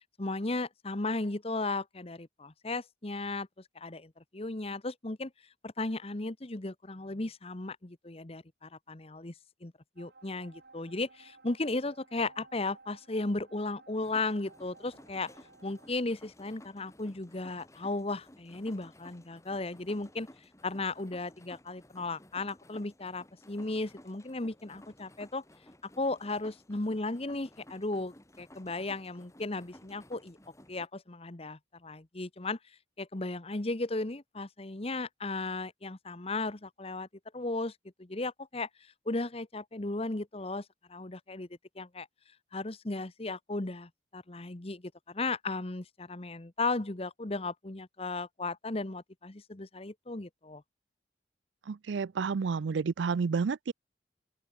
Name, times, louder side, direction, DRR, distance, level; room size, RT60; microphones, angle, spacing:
voice 1, 0.2-3.5 3.7-5.3 5.6-9.3 9.6-15.3 15.6-20.3 20.6-25.4 26.0-30.4 30.7-32.6 33.0-37.1 37.3-37.7 38.0-38.7 39.1-41.5 41.8-42.1 42.5-50.6, left 2 dB, 30° left, 1.1 m, -35 dB
sound 1, 10.0-15.9, right 3 dB, 55° right, 2.6 m, -58 dB
sound 2, 14.0-30.9, left 1 dB, 15° left, 3.1 m, -56 dB
voice 2, 51.7-53.7, right 5 dB, 75° right, 0.4 m, -30 dB
open air
head